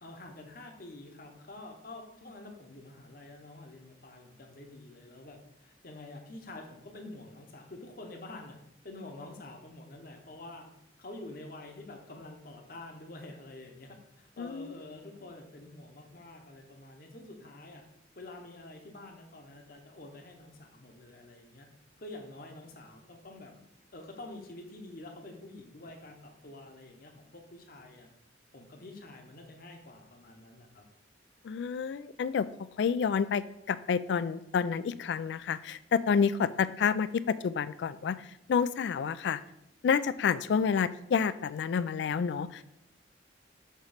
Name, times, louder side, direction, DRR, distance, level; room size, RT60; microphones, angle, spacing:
voice 1, 0.0-8.6 8.8-10.7 11.0-17.8 18.2-21.7 22.0-23.5 23.9-28.2 28.5-30.8, left 2 dB, 50° left, 3 dB, 1.0 m, -47 dB
voice 2, 14.4-14.7 31.4-32.5 32.8-38.2 38.5-39.4 39.8-42.6, left 6 dB, 65° left, 16 dB, 0.3 m, -29 dB
6.6 x 3.0 x 5.0 m, 0.80 s
head